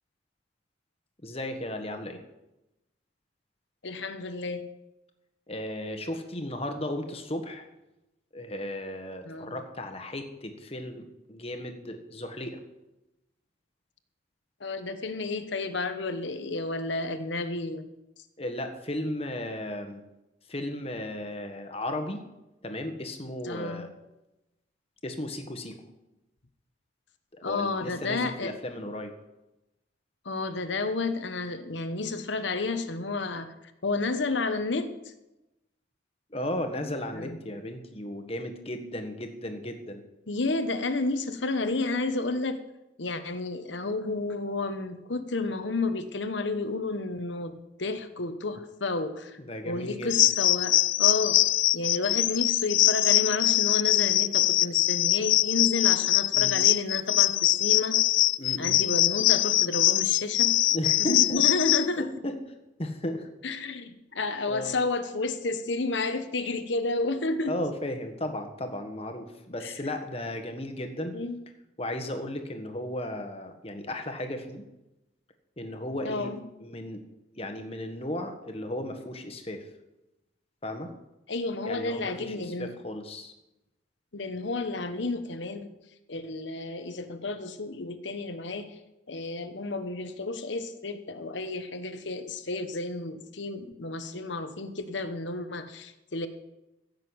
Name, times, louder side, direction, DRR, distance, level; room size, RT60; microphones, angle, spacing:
voice 1, 1.2-2.2 5.5-7.7 8.3-12.6 18.4-20.0 20.5-22.2 22.6-23.9 25.0-25.7 27.3-29.1 36.3-40.0 49.4-50.1 56.3-56.6 58.4-58.8 60.7-61.4 62.2-62.3 62.8-63.3 64.5-64.7 67.5-71.1 71.8-74.6 75.6-76.3 76.6-77.0 77.3-79.6 80.6-80.9 81.6-83.3, left 1 dB, 30° left, 6 dB, 1.5 m, -35 dB
voice 2, 3.8-4.6 9.2-9.6 14.6-17.9 23.4-23.9 27.4-28.5 30.2-33.5 33.8-34.9 37.1-37.4 40.3-42.6 43.0-49.4 49.6-51.4 51.7-58.0 58.6-60.6 61.0-62.1 63.4-67.6 69.6-69.7 71.1-71.4 76.0-76.4 81.3-82.7 84.1-85.7 86.1-88.7 89.1-96.3, left 3 dB, 70° left, 9 dB, 1.1 m, -31 dB
sound 1, 50.1-61.9, left 16 dB, 90° left, 0.4 m, -23 dB
15.5 x 6.7 x 8.0 m, 0.96 s
head